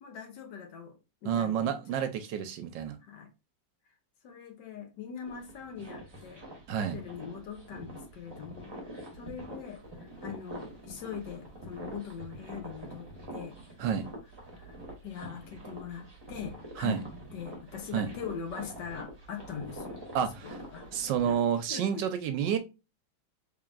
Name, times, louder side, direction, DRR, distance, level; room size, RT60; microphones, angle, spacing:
voice 1, 0.0-2.0 3.0-3.3 4.2-6.5 6.8-13.6 14.6-14.8 15.0-17.0 17.3-20.8 21.7-22.0, left 7 dB, 65° left, 1.4 m, -42 dB
voice 2, 1.3-3.0 6.7-7.0 13.8-14.1 16.8-17.0 17.9-18.1 20.1-20.6 20.9-22.6, right 8 dB, 75° right, 1.2 m, -29 dB
sound 1, 5.2-21.3, right 1 dB, 20° right, 0.8 m, -45 dB
3.7 x 3.4 x 2.4 m
omnidirectional pair, 2.1 m